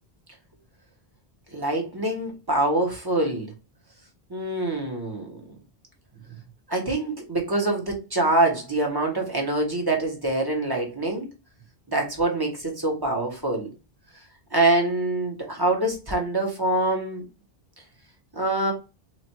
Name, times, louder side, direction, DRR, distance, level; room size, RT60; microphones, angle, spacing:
voice 1, 1.5-3.5 4.3-5.6 6.7-11.3 11.9-13.7 14.5-17.2 18.3-18.7, right 2 dB, 25° right, 1.0 m, -25 dB
3.0 x 2.5 x 4.3 m
omnidirectional pair, 1.0 m